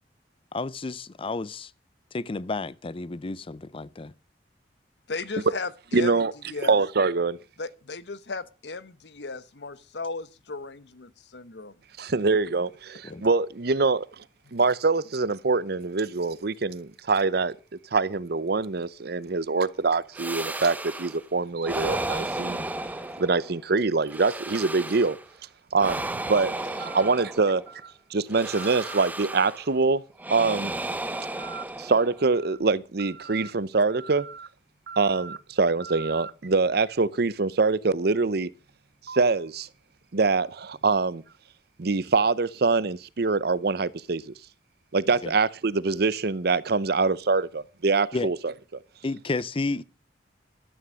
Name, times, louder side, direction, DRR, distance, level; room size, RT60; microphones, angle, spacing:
voice 1, 0.5-1.7 2.1-4.1 13.0-13.3 45.2-45.3 48.1-48.3 49.0-49.8, left 3 dB, 30° left, 0.5 m, -31 dB
voice 2, 5.1-6.1 6.5-6.8 7.6-11.7 13.1-13.2, left 3 dB, 75° left, 1.0 m, -35 dB
voice 3, 5.9-6.3 6.6-7.4 12.0-14.1 14.5-17.5 17.9-22.7 23.2-25.2 25.7-30.0 30.3-30.7 31.4-34.5 34.9-38.5 39.1-39.7 40.1-41.2 41.8-44.3 44.9-48.5, right 4 dB, 60° right, 0.7 m, -24 dB
sound 1, 20.1-21.2 21.6-23.6 24.1-25.3 25.7-27.7 28.3-29.7 30.2-32.3, right 2 dB, 10° right, 0.8 m, -34 dB
12.5 x 9.2 x 6.3 m
head